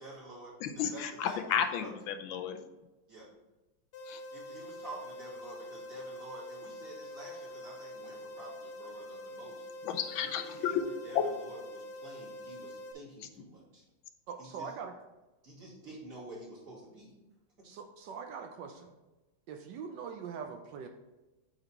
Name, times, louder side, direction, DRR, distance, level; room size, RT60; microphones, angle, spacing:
voice 1, 0.0-1.9 3.1-3.3 4.3-9.7 10.2-13.8 14.4-14.8 15.4-17.1 17.6-17.7, right 1 dB, 45° right, -7 dB, 2.8 m, -49 dB
voice 2, 0.6-2.6 4.1-4.2 9.8-10.4, left 8 dB, 90° left, 7 dB, 1.4 m, -33 dB
sound 1, 3.9-12.9, left 1 dB, 70° left, 1.5 m, -45 dB
voice 3, 14.3-14.9 17.6-18.9 19.5-20.9, right 6 dB, 75° right, 5 dB, 1.2 m, -42 dB
7.9 x 4.1 x 4.3 m, 1.1 s
omnidirectional pair, 2.1 m